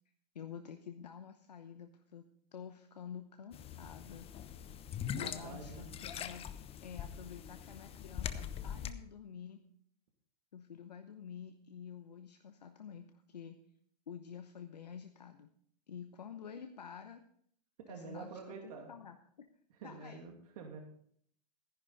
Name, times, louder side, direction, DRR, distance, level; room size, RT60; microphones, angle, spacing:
voice 1, 0.3-2.2 2.5-4.3 5.1-6.4 6.8-9.6 10.5-13.6 14.1-15.5 15.9-17.2 17.9-19.2 19.8-20.2, left 7 dB, 90° left, 7 dB, 0.9 m, -49 dB
sound 1, 3.5-8.9, left 9 dB, 30° left, 0.9 m, -43 dB
voice 2, 5.2-5.9 17.9-18.9 19.8-20.8, right 5 dB, 65° right, 2 dB, 2.5 m, -47 dB
14.0 x 10.5 x 4.0 m, 0.63 s
hypercardioid pair, 105°, 21 cm